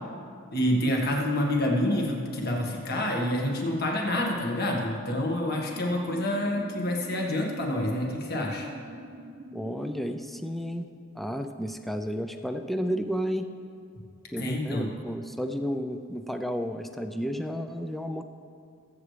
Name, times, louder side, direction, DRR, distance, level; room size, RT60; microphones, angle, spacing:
voice 1, 0.5-8.7 14.4-14.9, left 1 dB, 45° left, -1 dB, 1.7 m, -27 dB
sound 1, 5.1-10.1, equal, 80° right, 0.9 m, -45 dB
voice 2, 9.5-10.9 11.1-13.5 14.3-18.2, equal, ahead, 6 dB, 0.4 m, -32 dB
21.0 x 8.1 x 3.3 m, 2.5 s
head